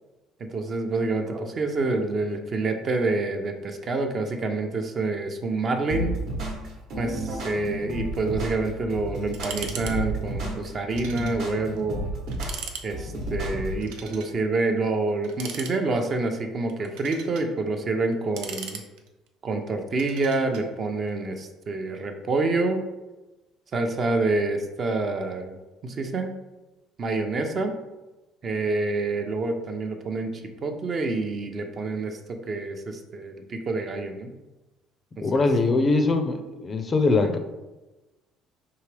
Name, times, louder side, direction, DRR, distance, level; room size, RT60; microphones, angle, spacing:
voice 1, 0.4-6.2 7.0-12.1 12.8-18.8 19.4-22.9 23.7-25.6 25.8-26.3 27.0-27.8 28.4-32.2 32.5-34.3 35.2-35.4 37.1-37.3, right 3 dB, 40° right, 5 dB, 0.5 m, -27 dB
sound 1, 5.9-13.9, right 1 dB, 60° right, 1.0 m, -32 dB
sound 2, 9.3-10.0 10.2-10.3 10.9-11.4 11.8-11.9 12.3-12.9 13.8-14.3 15.2-16.1 16.7-17.5 18.1-19.3 20.0-20.6, right 6 dB, 85° right, 0.5 m, -38 dB
voice 2, 35.2-37.4, left 3 dB, 25° left, 7 dB, 0.4 m, -22 dB
4.7 x 2.9 x 3.2 m, 1.1 s
cardioid pair, 120°, 0 cm